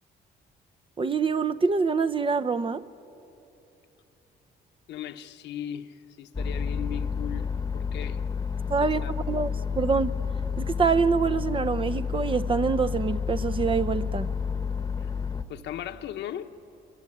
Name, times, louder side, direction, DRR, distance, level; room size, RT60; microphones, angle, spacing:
voice 1, 1.0-2.9 8.7-10.1 10.6-14.3, right 5 dB, 30° right, 0.7 m, -25 dB
voice 2, 4.9-8.2 8.8-9.1 15.0-15.1 15.5-16.5, left 10 dB, 80° left, 1.1 m, -38 dB
sound 1, 6.3-15.4, left 6 dB, 20° left, 1.1 m, -30 dB
27.5 x 23.0 x 8.7 m
cardioid pair, 85°, 18 cm